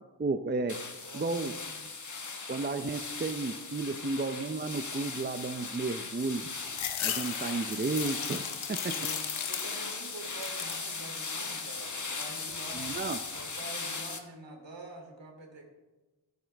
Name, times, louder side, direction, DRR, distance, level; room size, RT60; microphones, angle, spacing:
voice 1, 0.2-0.8 1.1-1.5 2.5-6.5 7.0-8.4 8.7-8.9 12.7-13.2, right 3 dB, 20° right, 9 dB, 0.6 m, -32 dB
sound 1, 0.7-14.2, left 4 dB, 40° left, 1.5 m, -38 dB
voice 2, 1.0-1.8 8.8-12.9 13.3-15.7, right 2 dB, 65° right, 1 dB, 3.1 m, -47 dB
sound 2, 6.7-10.0 10.3-10.9 11.4-12.1, left 10 dB, 90° left, 0.8 m, -37 dB
13.5 x 12.5 x 3.4 m, 1.1 s
wide cardioid pair, 75°, 46 cm